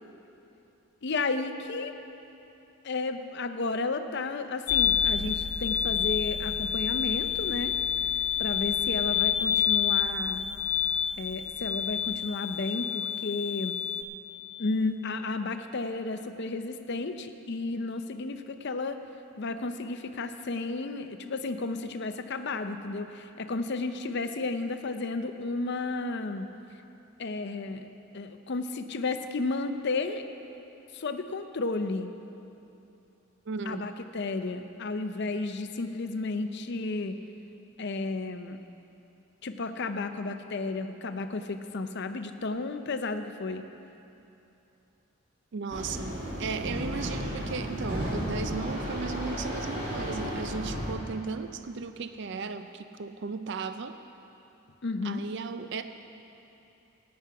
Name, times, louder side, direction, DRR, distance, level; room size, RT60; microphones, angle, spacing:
voice 1, 1.0-1.9 2.8-7.8 8.4-10.4 11.2-13.8 14.6-19.0 19.4-26.5 27.2-27.9 28.1-30.2 30.9-32.1 33.7-37.2 37.8-38.6 39.4-43.6 54.8-55.2, left 3 dB, 50° left, 8 dB, 0.6 m, -32 dB
sound 1, 4.7-14.0, left 9 dB, 90° left, 0.9 m, -28 dB
voice 2, 33.5-33.8 45.5-54.0 55.0-55.8, right 4 dB, 50° right, 9 dB, 0.4 m, -36 dB
sound 2, 45.7-50.9, equal, 35° right, 2.8 m, -33 dB
15.5 x 9.6 x 4.8 m, 2.9 s
head